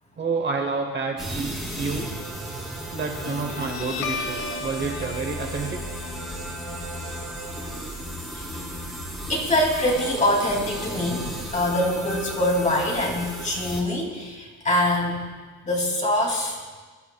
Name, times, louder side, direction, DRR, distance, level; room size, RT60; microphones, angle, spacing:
voice 1, 0.2-2.1 2.9-5.8, right 4 dB, 30° right, 3 dB, 0.9 m, -29 dB
sound 1, 1.2-13.8, right 1 dB, ahead, 2.5 m, -35 dB
Guitar, 3.3-10.3, left 5 dB, 65° left, 1.4 m, -36 dB
voice 2, 9.3-11.3 11.5-15.2 15.6-16.6, left 1 dB, 20° left, -1 dB, 2.4 m, -24 dB
22.0 x 11.5 x 2.2 m, 1.4 s
cardioid pair, 145°, 38 cm